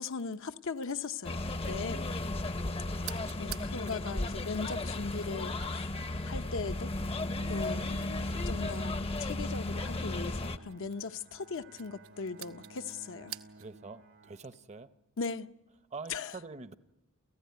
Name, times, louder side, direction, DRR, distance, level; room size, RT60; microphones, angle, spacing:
voice 1, 0.0-1.4 1.7-2.1 3.4-5.9 6.2-6.9 7.5-8.0 8.5-13.3 15.2-15.5 16.1-16.3, left 4 dB, 65° left, 0.7 m, -38 dB
sound 1, 1.2-10.6, left 2 dB, 25° left, 0.7 m, -34 dB
voice 2, 1.7-2.3 13.5-14.9 15.9-16.7, right 3 dB, 30° right, 0.7 m, -46 dB
sound 2, 3.0-13.9, right 12 dB, 70° right, 0.9 m, -52 dB
Bowed string instrument, 9.3-15.1, right 2 dB, 90° right, 2.1 m, -56 dB
29.0 x 15.0 x 9.4 m
head